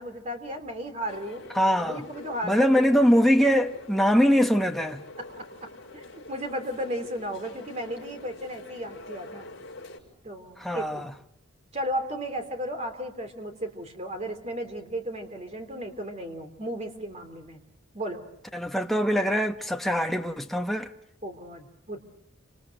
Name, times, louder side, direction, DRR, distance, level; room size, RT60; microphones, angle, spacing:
voice 1, 0.0-1.4 1.8-2.9 5.2-9.5 10.2-11.1 11.7-17.6 17.9-18.2 21.2-22.0, equal, 35° right, 3.3 m, -35 dB
sound 1, 1.1-10.0, left 2 dB, 60° left, 5.7 m, -45 dB
voice 2, 1.5-2.0 2.4-5.0 10.6-11.1 18.5-20.9, equal, ahead, 1.0 m, -23 dB
29.0 x 27.0 x 6.5 m
head